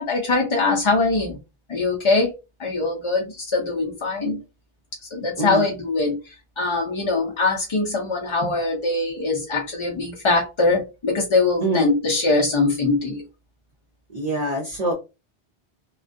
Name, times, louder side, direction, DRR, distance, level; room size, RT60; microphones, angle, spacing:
voice 1, 0.0-1.4 1.7-2.3 2.6-4.4 5.1-6.2 6.6-13.2, left 3 dB, 40° left, -1 dB, 0.4 m, -22 dB
voice 2, 14.1-14.9, right 1 dB, 45° right, 0 dB, 0.6 m, -24 dB
2.3 x 2.2 x 2.5 m, 0.27 s
omnidirectional pair, 1.0 m